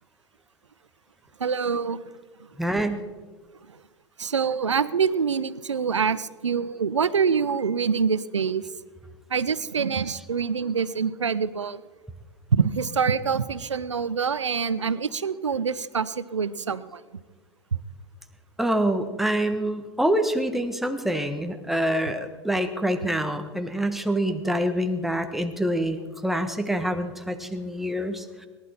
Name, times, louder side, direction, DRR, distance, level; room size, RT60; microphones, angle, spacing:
voice 1, 1.4-2.0 4.2-8.6 9.3-11.8 12.5-17.0, right 6 dB, 85° right, 16 dB, 0.6 m, -25 dB
voice 2, 2.6-3.0 18.6-28.5, right 1 dB, ahead, 7 dB, 1.3 m, -26 dB
18.5 x 11.5 x 4.4 m, 1.4 s
figure-of-eight pair, 90°, 15 cm